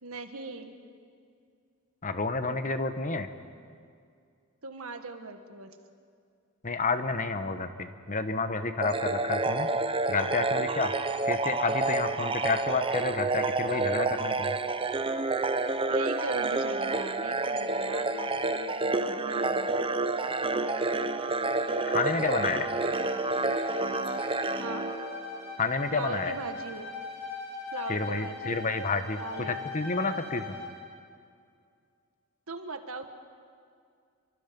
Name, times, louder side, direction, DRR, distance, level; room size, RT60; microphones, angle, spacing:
voice 1, 0.0-0.7 3.1-3.3 4.6-5.7 15.9-19.7 24.6-24.9 25.9-26.9 27.7-28.7 29.2-29.6 32.5-33.1, right 3 dB, 70° right, 7 dB, 1.7 m, -39 dB
voice 2, 2.0-3.3 6.6-9.7 10.1-10.9 11.2-14.6 21.9-22.7 25.6-26.3 27.9-30.4, left 3 dB, 35° left, 9 dB, 1.1 m, -30 dB
sound 1, 8.8-25.6, right 3 dB, 25° right, 0.7 m, -29 dB
Bowed string instrument, 20.3-30.8, left 3 dB, 65° left, 6.0 m, -41 dB
29.0 x 24.5 x 5.3 m, 2.3 s
head